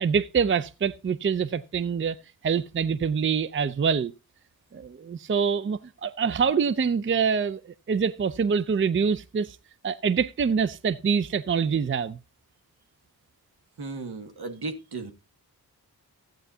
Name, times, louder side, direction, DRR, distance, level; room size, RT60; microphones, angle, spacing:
voice 1, 0.0-2.2 2.4-4.1 4.7-7.6 7.9-9.6 9.8-12.2, right 6 dB, 30° right, 0.5 m, -25 dB
voice 2, 13.8-15.1, right 3 dB, 75° right, 1.7 m, -35 dB
14.0 x 9.1 x 2.7 m
cardioid pair, 60°, 39 cm